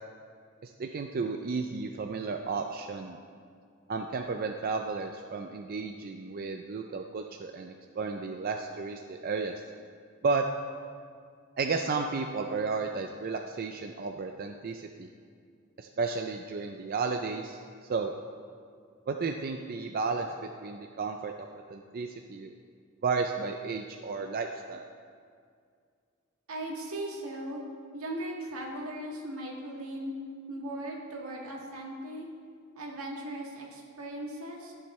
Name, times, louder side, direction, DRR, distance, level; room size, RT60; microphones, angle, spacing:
voice 1, 0.6-3.2 3.9-9.6 10.2-10.4 11.6-15.1 15.8-18.1 19.1-20.3 20.6-21.3 21.7-22.5 23.0-24.9, right 4 dB, 45° right, 4 dB, 0.4 m, -33 dB
voice 2, 26.5-27.6 27.9-30.1 30.5-32.3 32.7-34.7, right 1 dB, 80° right, -1 dB, 1.8 m, -38 dB
15.0 x 7.2 x 3.2 m, 2.2 s
head